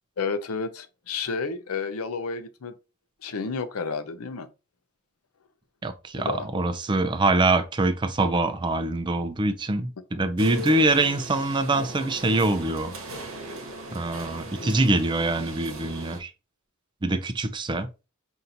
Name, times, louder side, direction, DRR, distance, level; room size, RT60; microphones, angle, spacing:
voice 1, 0.2-2.7 3.2-4.5 6.2-6.5 14.6-14.7, left 4 dB, 90° left, 0.6 m, -31 dB
voice 2, 5.8-12.9 13.9-16.3 17.0-17.9, right 2 dB, 20° right, 0.4 m, -24 dB
sound 1, 10.4-16.2, equal, 65° right, 1.0 m, -38 dB
5.7 x 2.6 x 2.6 m
head